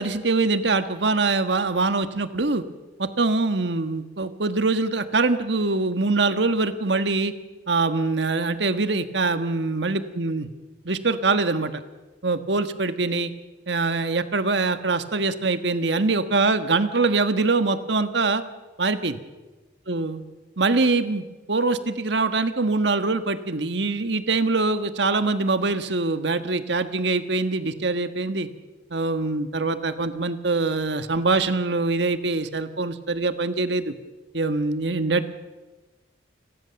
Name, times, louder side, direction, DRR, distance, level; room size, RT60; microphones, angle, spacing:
voice 1, 0.0-2.6 3.0-7.3 7.7-10.4 10.8-11.8 12.2-13.3 13.7-18.4 18.8-19.2 19.9-20.2 20.6-28.5 28.9-33.9 34.3-35.3, right 3 dB, 70° right, 10 dB, 1.5 m, -23 dB
30.0 x 21.5 x 7.0 m, 1.2 s
head